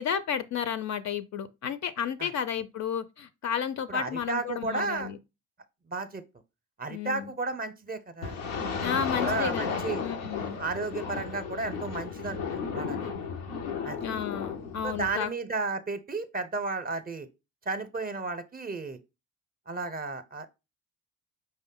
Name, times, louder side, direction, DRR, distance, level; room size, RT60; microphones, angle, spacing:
voice 1, 0.0-5.2 6.9-7.3 8.8-10.6 14.0-15.3, left 8 dB, 50° left, 0.5 m, -32 dB
voice 2, 3.9-5.1 5.9-6.2 6.8-8.4 9.2-10.0 10.6-13.1 13.8-14.1 14.8-17.3 17.7-19.0 19.7-20.5, right 3 dB, 25° right, 0.6 m, -33 dB
sound 1, 8.2-15.2, left 6 dB, 90° left, 0.6 m, -34 dB
5.1 x 2.2 x 3.7 m
hypercardioid pair, 45°, 37 cm